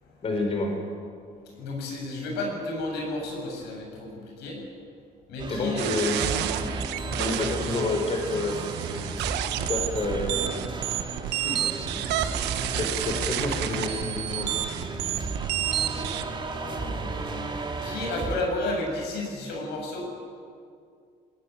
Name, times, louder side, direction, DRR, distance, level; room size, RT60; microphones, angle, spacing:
voice 1, 0.2-0.7 5.5-6.8 7.1-8.6 9.7-10.7 11.3-11.7 12.8-14.5, left 2 dB, 35° left, 2 dB, 4.5 m, -29 dB
voice 2, 1.5-4.6 5.3-6.2 15.7-20.1, left 2 dB, 85° left, 0 dB, 7.9 m, -33 dB
sound 1, 5.4-18.4, right 3 dB, 30° right, 2.7 m, -34 dB
sound 2, 5.8-16.2, right 12 dB, 90° right, 1.2 m, -30 dB
20.5 x 18.5 x 9.4 m, 2.3 s
cardioid pair, 110°, 17 cm